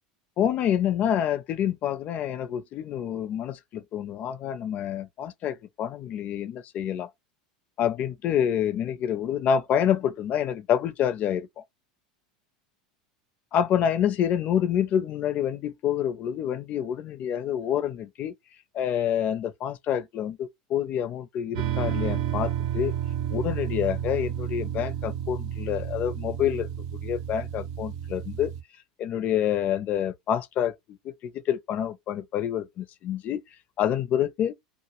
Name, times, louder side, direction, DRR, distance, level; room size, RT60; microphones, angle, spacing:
voice 1, 0.4-7.1 7.8-11.5 13.5-18.3 18.7-23.0 23.3-26.7 27.0-28.5 29.0-33.4 33.8-34.5, left 9 dB, 45° left, 0.5 m, -27 dB
sound 1, 21.5-28.6, right 10 dB, 65° right, 0.5 m, -31 dB
2.1 x 2.1 x 2.9 m
hypercardioid pair, 90°, 4 cm